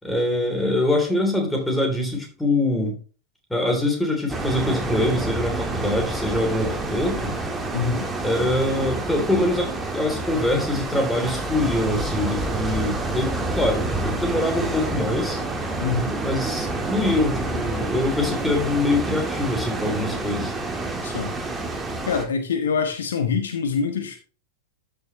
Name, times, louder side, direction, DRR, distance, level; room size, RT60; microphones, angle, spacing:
voice 1, 0.0-2.9 3.5-7.3 8.2-15.4 16.2-20.5, left 1 dB, 5° left, 1 dB, 3.3 m, -24 dB
sound 1, 4.3-22.3, right 2 dB, 10° right, 1.8 m, -28 dB
voice 2, 7.7-8.1 15.8-16.1 21.0-21.3 22.1-24.2, left 5 dB, 65° left, 7 dB, 1.1 m, -25 dB
13.0 x 6.2 x 3.1 m, 0.37 s
figure-of-eight pair, 90°, 0 cm